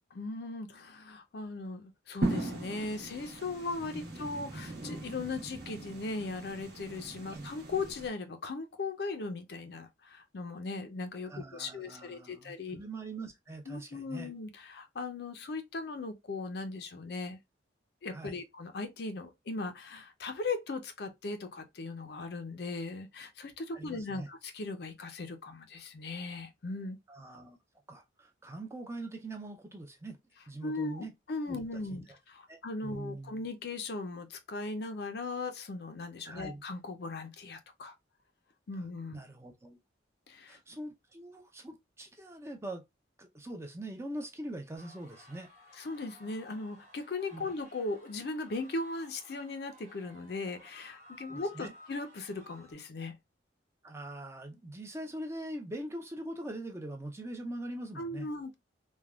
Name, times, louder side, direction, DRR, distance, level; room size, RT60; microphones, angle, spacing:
voice 1, 0.1-12.8 13.7-17.4 18.0-27.0 30.6-37.9 38.7-39.1 40.3-40.6 45.8-53.2 58.0-58.5, left 3 dB, 55° left, 0.4 m, -38 dB
sound 1, 2.2-8.1, right 2 dB, 55° right, 1.0 m, -39 dB
voice 2, 11.3-14.3 18.1-18.4 23.7-24.3 27.1-27.6 27.9-30.2 30.5-31.1 31.5-31.6 31.9-32.0 32.5-33.4 36.2-36.6 39.1-39.8 40.5-42.8 43.2-45.5 47.3-47.5 51.3-51.7 53.8-58.3, right 1 dB, 15° right, 0.4 m, -42 dB
sound 2, 44.8-52.7, left 1 dB, 40° right, 1.1 m, -56 dB
3.3 x 2.2 x 2.2 m
head